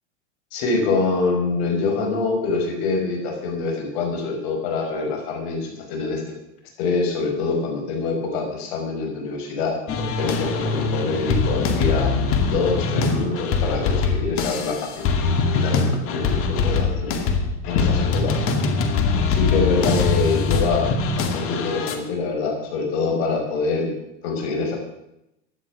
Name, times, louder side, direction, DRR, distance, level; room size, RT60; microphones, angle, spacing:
voice 1, 0.5-6.2 6.8-12.2 12.5-17.3 17.6-18.4 19.3-23.9 24.2-24.8, left 4 dB, 65° left, 3 dB, 5.8 m, -25 dB
sound 1, 9.9-22.0, left 4 dB, 40° left, 2.2 m, -22 dB
15.5 x 11.0 x 6.4 m, 0.82 s
supercardioid pair, 120°, 34 cm